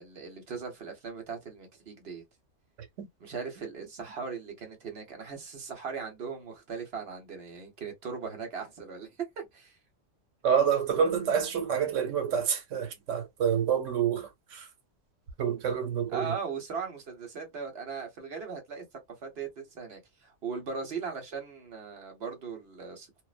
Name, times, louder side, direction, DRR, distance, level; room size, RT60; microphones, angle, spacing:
voice 1, 0.0-2.2 3.2-9.1 9.4-9.8 16.1-23.2, right 5 dB, 55° right, 1.2 m, -39 dB
voice 2, 10.4-14.7 15.4-16.4, right 7 dB, 80° right, 1.1 m, -28 dB
2.6 x 2.0 x 2.4 m
omnidirectional pair, 1.3 m